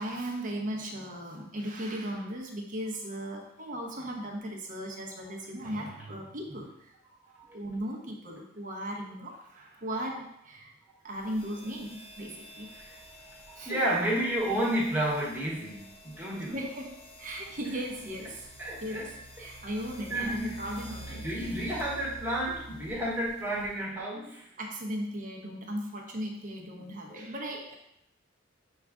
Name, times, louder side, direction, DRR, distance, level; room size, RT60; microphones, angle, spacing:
voice 1, 0.0-6.9 7.5-10.7 11.0-12.7 13.6-14.0 16.5-18.5 18.8-21.3 24.6-27.8, equal, 40° right, 0 dB, 0.8 m, -37 dB
voice 2, 7.3-7.7 12.8-13.0 13.5-16.6 18.6-19.1 20.1-20.7 21.1-24.5, right 1 dB, 10° right, -5 dB, 1.1 m, -31 dB
sound 1, 11.1-24.0, right 1 dB, 30° left, 0.9 m, -49 dB
6.2 x 2.4 x 3.5 m, 0.79 s
head